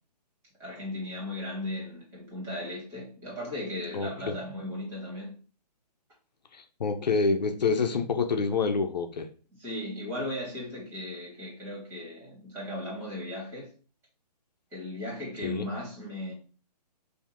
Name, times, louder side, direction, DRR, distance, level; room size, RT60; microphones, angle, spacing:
voice 1, 0.6-5.3 9.6-13.7 14.7-16.3, left 1 dB, 10° right, 2.1 m, -37 dB
voice 2, 3.9-4.3 6.5-9.3 15.4-15.7, left 4 dB, 80° left, 0.8 m, -27 dB
3.5 x 2.8 x 4.2 m
hypercardioid pair, 150°, 21 cm